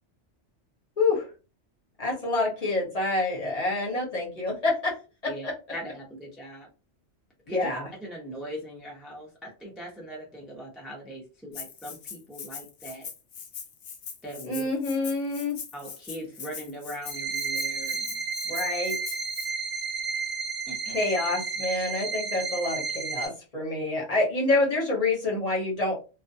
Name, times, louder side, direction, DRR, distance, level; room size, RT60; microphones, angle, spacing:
voice 1, 1.0-1.3 2.0-4.9 5.4-5.5 7.5-7.9 14.4-15.5 18.4-18.9 20.9-25.9, left 2 dB, 35° left, -3 dB, 0.8 m, -27 dB
voice 2, 5.7-6.7 7.5-7.7 8.0-13.1 14.2-14.7 15.7-18.2 20.7-21.0, equal, ahead, -2 dB, 0.5 m, -40 dB
Rattle (instrument), 11.5-19.5, left 6 dB, 80° left, 1.0 m, -41 dB
sound 1, 17.0-23.3, right 5 dB, 60° right, 0.8 m, -32 dB
2.4 x 2.2 x 2.6 m, 0.32 s
omnidirectional pair, 1.2 m